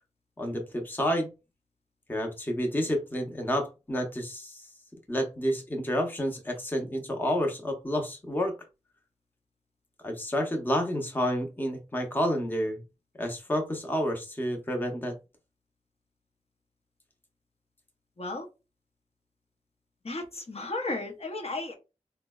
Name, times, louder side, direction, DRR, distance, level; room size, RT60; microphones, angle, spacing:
voice 1, 0.4-1.3 2.1-4.6 5.1-8.6 10.0-12.8 13.2-15.2, equal, 15° left, 2 dB, 0.7 m, -29 dB
voice 2, 18.2-18.5 20.0-21.7, left 2 dB, 50° left, 2 dB, 0.7 m, -34 dB
3.7 x 2.1 x 2.2 m, 0.28 s
wide cardioid pair, 65°, 13 cm